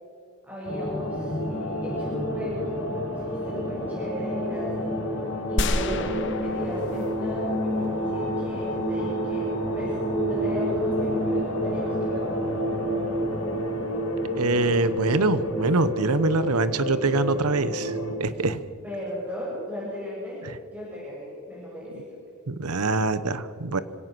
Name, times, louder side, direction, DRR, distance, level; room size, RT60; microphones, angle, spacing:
voice 1, 0.4-4.9 5.5-10.0 10.3-12.6 18.8-22.2, left 1 dB, 5° right, -7 dB, 6.8 m, -35 dB
sound 1, 0.6-18.2, equal, 70° left, 4.5 m, -29 dB
sound 2, 5.6-7.9, left 2 dB, 55° left, 1.2 m, -30 dB
voice 2, 14.4-17.9 18.2-18.6 20.4-20.5 22.5-23.8, right 3 dB, 85° right, 14 dB, 1.0 m, -24 dB
25.5 x 17.0 x 6.2 m, 2.2 s
head